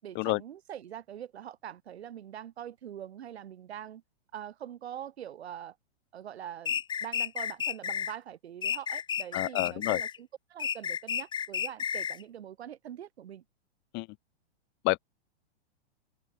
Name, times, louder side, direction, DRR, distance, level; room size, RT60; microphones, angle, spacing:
voice 1, 0.0-4.0 4.3-5.8 6.1-13.4, right 10 dB, 75° right, 7.4 m, -43 dB
sound 1, 6.7-8.1 8.6-10.2 10.6-12.2, left 7 dB, 15° left, 1.5 m, -32 dB
voice 2, 9.3-10.0 13.9-14.1 14.8-15.0, left 24 dB, 35° left, 2.9 m, -28 dB
hypercardioid pair, 140°, 32 cm